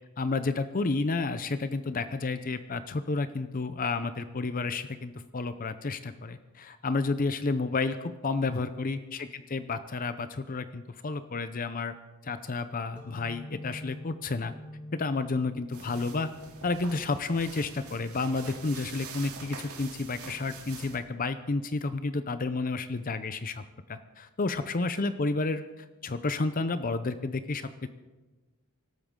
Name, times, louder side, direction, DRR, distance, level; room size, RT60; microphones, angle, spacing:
voice 1, 0.2-11.9 12.2-14.5 14.9-16.3 16.6-23.6 23.9-27.9, left 3 dB, 40° left, 11 dB, 0.6 m, -31 dB
sound 1, 13.0-20.3, left 1 dB, 5° right, 1.8 m, -48 dB
sound 2, 15.7-21.0, right 5 dB, 85° right, 3.1 m, -45 dB
24.5 x 13.0 x 3.8 m, 1.2 s
head